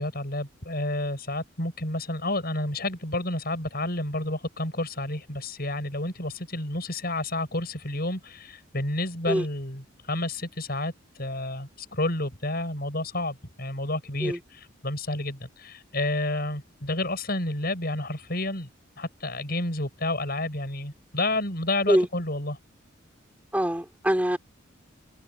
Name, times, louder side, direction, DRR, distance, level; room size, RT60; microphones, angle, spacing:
voice 1, 0.0-10.9 11.2-18.7 19.0-22.6, left 2 dB, 50° left, 7.7 m, -30 dB
voice 2, 23.5-24.4, equal, 10° right, 3.1 m, -23 dB
head